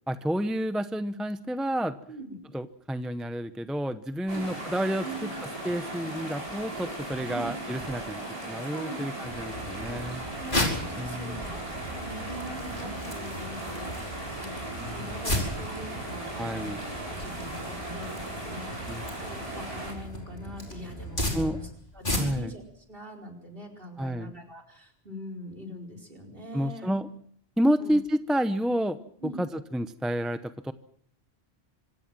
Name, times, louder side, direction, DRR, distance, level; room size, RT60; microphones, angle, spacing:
voice 1, 0.1-2.0 2.5-5.0 5.6-8.2 8.5-10.2 11.0-11.4 14.8-15.2 16.4-16.8 18.9-19.0 21.3-21.6 22.2-22.5 24.0-24.3 26.5-27.1 27.6-29.0 29.4-30.7, equal, ahead, 11 dB, 0.7 m, -30 dB
voice 2, 2.1-2.4 4.3-4.6 5.0-5.2 7.3-7.5 8.7-9.1 9.5-9.7 10.4-13.9 14.3-16.8 17.0-22.6 22.9-26.9 27.8-27.9 29.2-29.5, right 1 dB, 60° right, 6 dB, 5.0 m, -43 dB
sound 1, 4.3-19.9, right 1 dB, 35° right, 6.9 m, -37 dB
sound 2, 9.2-21.7, right 1 dB, 70° left, 7.3 m, -43 dB
sound 3, 10.4-22.6, left 1 dB, 50° left, 5.3 m, -35 dB
25.5 x 17.0 x 7.6 m, 0.66 s
omnidirectional pair, 1.1 m